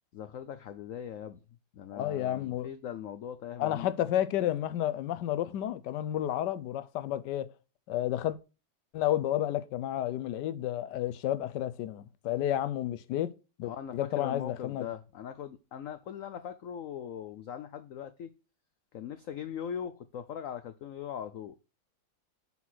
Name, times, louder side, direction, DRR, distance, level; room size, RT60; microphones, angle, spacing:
voice 1, 0.1-1.4 1.7-4.1 13.6-18.3 18.9-21.6, left 9 dB, 90° left, 0.7 m, -40 dB
voice 2, 1.9-2.7 3.6-7.5 7.9-8.4 8.9-13.3 13.6-14.9, left 12 dB, 70° left, 1.2 m, -31 dB
5.9 x 5.5 x 6.2 m
omnidirectional pair, 2.1 m